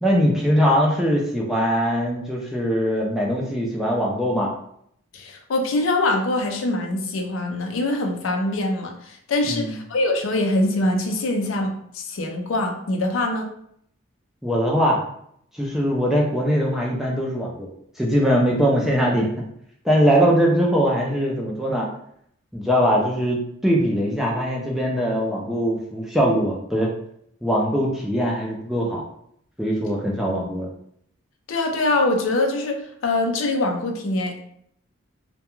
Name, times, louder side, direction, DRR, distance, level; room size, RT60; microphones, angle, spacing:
voice 1, 0.0-4.5 9.5-9.8 14.4-15.0 15.6-17.7 18.0-19.3 19.8-21.9 22.5-26.9 27.4-29.0 29.6-30.7, equal, ahead, -3 dB, 0.3 m, -21 dB
voice 2, 5.1-13.5 31.5-32.8 33.0-34.4, left 2 dB, 75° left, 3 dB, 0.4 m, -23 dB
2.2 x 2.2 x 2.9 m, 0.71 s
head